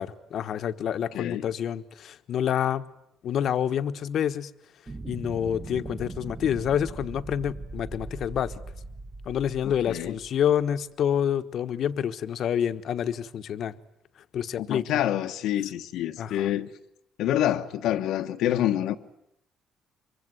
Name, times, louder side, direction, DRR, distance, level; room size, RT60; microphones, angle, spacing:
voice 1, 0.0-2.9 3.2-4.5 5.1-8.5 9.2-13.8 14.3-15.0 16.2-16.5, left 9 dB, 60° left, 1.2 m, -28 dB
sound 1, 4.9-10.6, right 3 dB, 20° right, 1.2 m, -40 dB
voice 2, 14.6-16.7 17.2-19.0, left 12 dB, 85° left, 1.3 m, -27 dB
24.5 x 23.5 x 9.7 m
cardioid pair, 115°, 0 cm